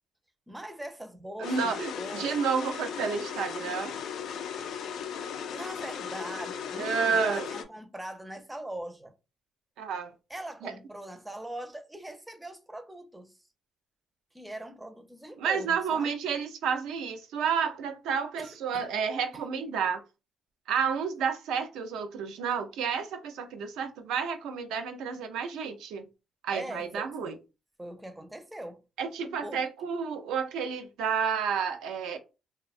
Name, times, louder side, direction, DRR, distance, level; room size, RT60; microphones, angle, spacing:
voice 1, 0.5-2.4 5.5-9.1 10.3-13.4 14.3-16.1 18.4-18.9 19.3-19.4 26.5-27.3 27.8-28.8 29.4-29.6, right 1 dB, 10° right, 0.4 m, -41 dB
sound 1, 1.4-7.6, left 7 dB, 75° left, 0.3 m, -37 dB
voice 2, 1.4-3.9 6.8-7.5 9.8-10.1 10.6-10.7 15.4-20.0 20.7-26.1 26.4-27.4 29.0-32.2, right 6 dB, 90° right, 0.4 m, -30 dB
2.6 x 2.1 x 2.4 m
cardioid pair, 90°, 0 cm